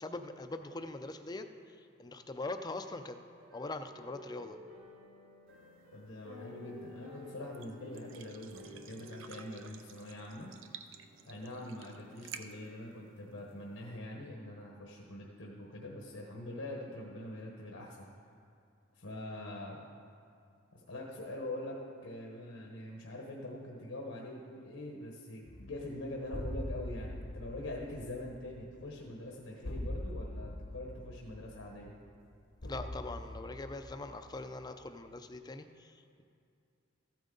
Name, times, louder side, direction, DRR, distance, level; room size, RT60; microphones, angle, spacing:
voice 1, 0.0-1.5 1.8-3.2 3.5-4.6 32.7-36.2, left 2 dB, 20° left, 8 dB, 0.5 m, -42 dB
sound 1, 3.4-10.4 10.9-11.3, left 2 dB, 90° right, 2.4 m, -52 dB
sound 2, 5.5-14.0, right 7 dB, 65° right, 0.6 m, -54 dB
voice 2, 5.9-10.5 11.3-18.1 19.0-19.9 20.7-31.9, left 1 dB, 75° left, -1 dB, 1.1 m, -44 dB
sound 3, 25.5-34.9, left 1 dB, 55° left, 0.9 m, -43 dB
14.0 x 9.0 x 3.8 m, 2.4 s
head